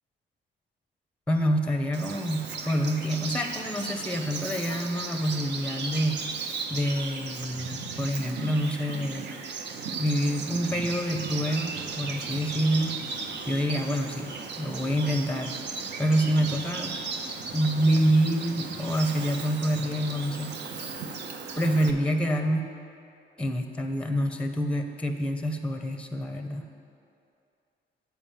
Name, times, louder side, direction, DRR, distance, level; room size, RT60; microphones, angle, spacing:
voice 1, 1.3-6.2 6.7-9.3 10.0-13.0 13.5-15.5 16.0-17.0 17.5-20.6 21.6-22.7 23.4-26.6, equal, 5° left, 5 dB, 0.7 m, -27 dB
Bird vocalization bird call bird song, 1.9-21.9, right 5 dB, 60° right, 0.8 m, -36 dB
8.9 x 4.7 x 7.3 m, 2.6 s
cardioid pair, 90°, 20 cm